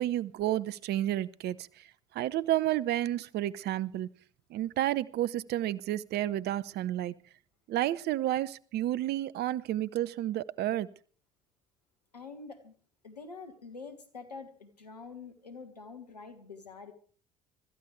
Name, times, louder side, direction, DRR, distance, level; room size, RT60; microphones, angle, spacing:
voice 1, 0.0-1.9 2.1-4.1 4.5-7.2 7.7-10.9, right 13 dB, 55° right, 0.8 m, -31 dB
voice 2, 12.1-12.7 13.0-16.9, left 4 dB, 90° left, 1.8 m, -46 dB
25.5 x 14.0 x 3.3 m
figure-of-eight pair, 50°, 20 cm